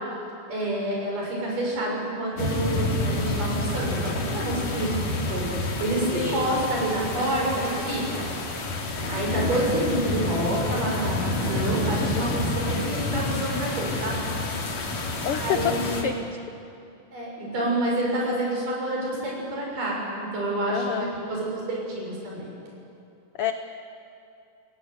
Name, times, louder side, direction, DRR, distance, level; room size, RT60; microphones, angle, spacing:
voice 1, 0.5-8.3 9.1-14.2 15.4-16.1 17.1-22.5, right 1 dB, 80° right, -3 dB, 8.4 m, -28 dB
sound 1, 2.4-16.0, left 2 dB, 55° left, 3.6 m, -29 dB
voice 2, 6.1-6.5 11.5-11.6 15.2-16.2 20.7-21.1 23.4-23.5, left 9 dB, 85° left, 8 dB, 1.2 m, -28 dB
30.0 x 17.5 x 8.1 m, 2.7 s
omnidirectional pair, 3.7 m